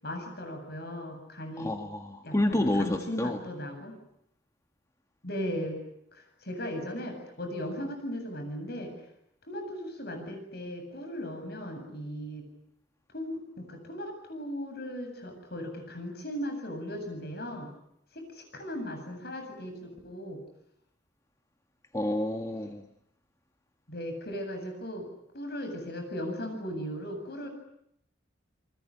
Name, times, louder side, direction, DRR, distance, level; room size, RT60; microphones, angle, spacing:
voice 1, 0.0-1.7 2.2-4.0 5.2-5.8 6.1-8.9 9.5-12.4 13.1-17.7 18.1-20.4 23.9-25.1 25.3-27.5, equal, 60° left, 6 dB, 8.0 m, -37 dB
voice 2, 1.6-3.4 21.9-22.9, left 1 dB, 15° left, 5 dB, 1.5 m, -29 dB
29.0 x 20.5 x 9.9 m, 0.75 s
head